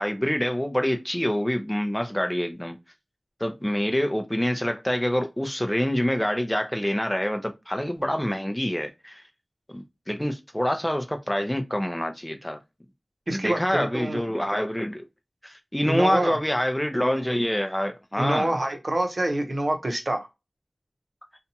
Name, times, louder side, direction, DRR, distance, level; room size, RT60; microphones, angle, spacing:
voice 1, 0.0-2.8 3.4-9.2 9.7-12.6 13.3-15.0 15.4-18.5, equal, 10° left, 0.6 m, -26 dB
voice 2, 13.3-14.2 15.8-16.4 18.2-20.3, right 1 dB, 55° right, 0.7 m, -26 dB
2.7 x 2.2 x 2.7 m
wide cardioid pair, 50°, 0 cm